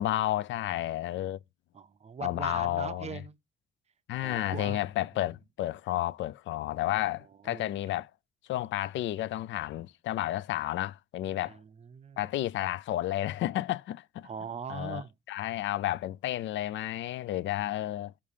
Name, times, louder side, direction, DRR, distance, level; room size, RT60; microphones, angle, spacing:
voice 1, 0.0-1.4 2.2-3.2 4.1-8.1 8.5-11.6 12.2-14.3 14.7-15.0 15.3-18.1, left 14 dB, 70° left, 0.4 m, -31 dB
voice 2, 1.7-3.4 4.2-4.8 7.4-7.8 11.5-12.2 14.2-15.1, right 6 dB, 35° right, 0.5 m, -40 dB
5.6 x 5.4 x 4.9 m
cardioid pair, 90°, 20 cm